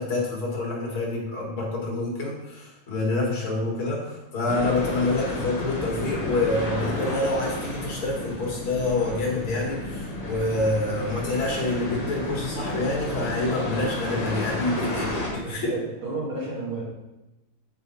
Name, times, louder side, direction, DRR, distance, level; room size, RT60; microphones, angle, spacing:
voice 1, 0.0-15.7, left 2 dB, 90° left, -2 dB, 2.8 m, -27 dB
sound 1, 4.5-15.3, left 1 dB, 25° left, 1.1 m, -32 dB
voice 2, 15.4-16.8, right 3 dB, 85° right, -7 dB, 3.8 m, -31 dB
8.9 x 5.0 x 4.2 m, 1.0 s
omnidirectional pair, 2.2 m